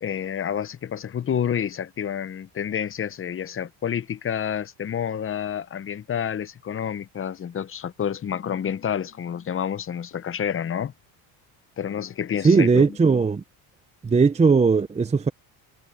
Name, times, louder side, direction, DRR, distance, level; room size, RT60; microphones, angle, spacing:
voice 1, 0.0-10.9 11.8-13.0, left 8 dB, 25° left, 0.7 m, -29 dB
voice 2, 12.4-13.4 14.0-15.3, right 4 dB, 15° right, 0.6 m, -18 dB
cardioid pair, 135°, 48 cm